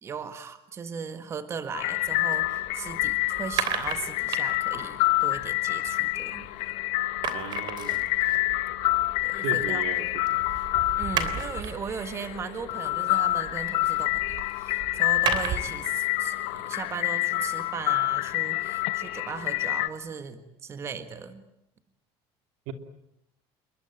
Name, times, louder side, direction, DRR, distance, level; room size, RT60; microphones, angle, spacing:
voice 1, 0.0-6.5 9.2-9.8 11.0-21.4, right 6 dB, 25° right, 10 dB, 1.8 m, -37 dB
sound 1, 1.7-19.9, left 19 dB, 75° left, 1.4 m, -28 dB
sound 2, 2.0-6.7 7.0-15.8, right 8 dB, 45° right, 3.3 m, -36 dB
voice 2, 7.3-8.1 9.3-10.5 22.7-22.8, right 8 dB, 80° right, 8 dB, 3.1 m, -36 dB
28.5 x 23.0 x 9.0 m, 0.82 s
cardioid pair, 170°, 11 cm